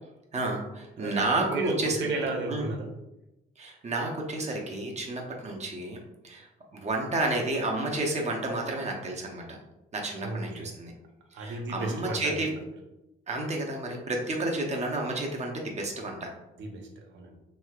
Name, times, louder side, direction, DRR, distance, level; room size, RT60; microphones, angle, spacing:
voice 1, 0.3-2.1 2.5-2.7 3.6-9.6 9.9-10.9 11.3-12.5 13.3-16.3, right 2 dB, 35° right, 0 dB, 0.7 m, -31 dB
voice 2, 1.0-2.9 10.2-10.7 11.3-12.5 16.6-17.4, right 2 dB, 70° right, 3 dB, 0.6 m, -34 dB
3.1 x 2.8 x 2.3 m, 0.95 s
cardioid pair, 90°, 20 cm